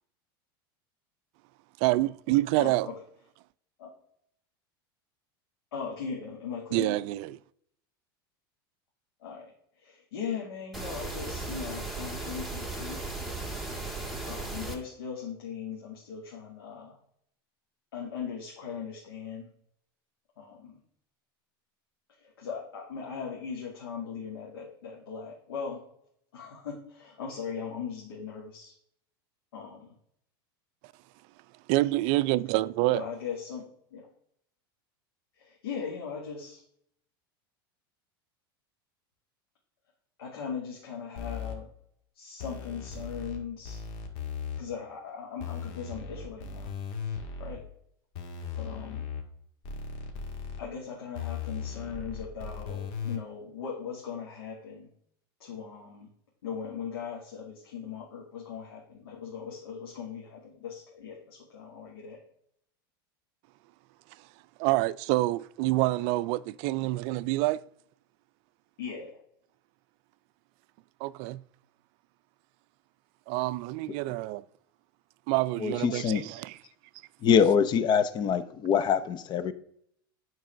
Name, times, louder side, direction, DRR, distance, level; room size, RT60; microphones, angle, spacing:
voice 1, 1.8-2.9 6.7-7.3 31.7-33.0 64.6-67.6 71.0-71.4 73.3-74.4 75.3-76.6, right 18 dB, 55° right, 0.4 m, -27 dB
voice 2, 2.6-2.9 3.8-3.9 5.7-7.0 9.2-9.5 9.8-13.1 14.2-17.0 17.9-19.5 20.4-20.8 22.2-25.8 26.3-28.7 29.5-29.9 32.9-33.7 33.9-34.1 35.4-36.6 40.2-41.7 42.1-43.8 44.6-46.7 47.4-47.7 48.6-49.1 50.6-54.9 55.4-56.1 56.4-62.2 68.8-69.2, left 6 dB, 90° left, 2.3 m, -39 dB
sound 1, 10.7-14.7, right 2 dB, ahead, 2.4 m, -36 dB
sound 2, 41.2-41.5 42.4-43.4 43.6-44.6 45.4-47.6 48.1-49.2 49.6-50.6 51.1-53.2, left 6 dB, 60° left, 2.0 m, -37 dB
voice 3, 75.6-76.2 77.2-79.5, left 7 dB, 35° left, 0.7 m, -24 dB
9.3 x 4.6 x 6.1 m
supercardioid pair, 110°, 12 cm